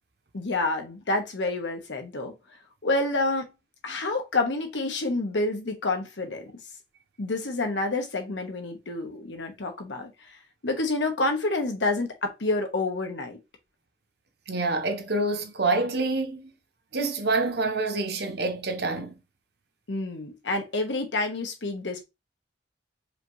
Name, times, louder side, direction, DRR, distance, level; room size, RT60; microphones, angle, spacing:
voice 1, 0.3-2.3 2.8-3.5 3.8-6.5 7.2-10.1 10.6-13.4 19.9-22.0, left 2 dB, 90° left, 1.1 m, -28 dB
voice 2, 14.5-16.5 16.9-19.2, right 3 dB, 65° right, 0.9 m, -27 dB
5.0 x 2.7 x 3.1 m
head